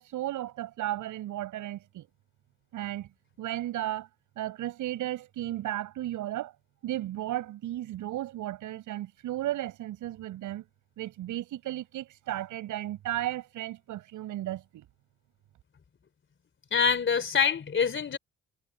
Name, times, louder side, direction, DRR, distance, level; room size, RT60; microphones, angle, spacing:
voice 1, 0.0-2.1 2.7-3.1 3.4-4.1 4.4-6.5 6.8-10.7 11.0-14.9, right 14 dB, 85° right, 7.2 m, -34 dB
voice 2, 16.7-18.2, left 6 dB, 40° left, 3.4 m, -25 dB
cardioid pair, 90°, 30 cm